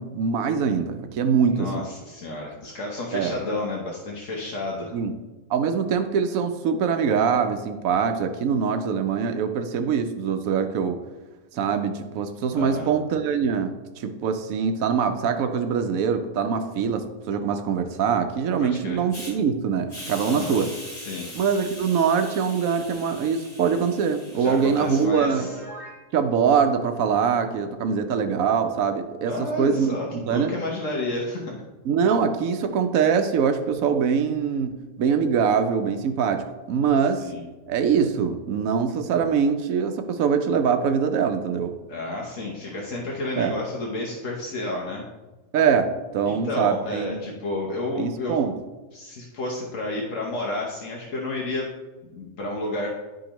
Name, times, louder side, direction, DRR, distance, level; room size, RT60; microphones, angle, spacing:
voice 1, 0.0-1.8 3.1-3.3 4.9-5.1 5.5-11.0 11.5-20.7 21.3-25.5 26.1-30.0 30.3-30.5 31.9-37.3 37.7-41.7 43.3-43.5 45.5-47.3 47.9-48.5, right 6 dB, 90° right, 7 dB, 1.1 m, -23 dB
voice 2, 1.5-4.9 12.5-12.9 18.6-19.0 20.2-20.6 21.0-21.3 24.3-25.6 29.3-31.6 37.2-37.4 41.9-45.0 46.3-48.4 48.9-51.7 52.0-52.9, left 2 dB, 70° left, -2 dB, 1.4 m, -31 dB
Hiss, 19.1-19.3 19.9-25.0, left 1 dB, 55° left, 3.1 m, -41 dB
Piano, 25.2-26.0, right 1 dB, 25° left, 2.1 m, -40 dB
10.5 x 5.0 x 3.0 m, 1.1 s
omnidirectional pair, 1.4 m